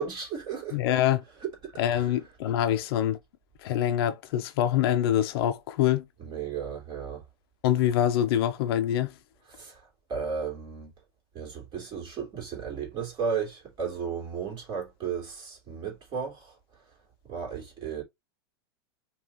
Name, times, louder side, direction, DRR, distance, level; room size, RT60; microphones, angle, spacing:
voice 1, 0.0-0.8 1.4-2.1 6.2-7.2 9.5-10.9 11.3-16.5 17.3-18.0, right 6 dB, 35° right, 3.2 m, -34 dB
voice 2, 0.7-1.2 1.8-3.2 3.6-6.0 7.6-9.1, left 11 dB, 65° left, 0.7 m, -25 dB
5.2 x 3.1 x 3.0 m
hypercardioid pair, 125°, 14 cm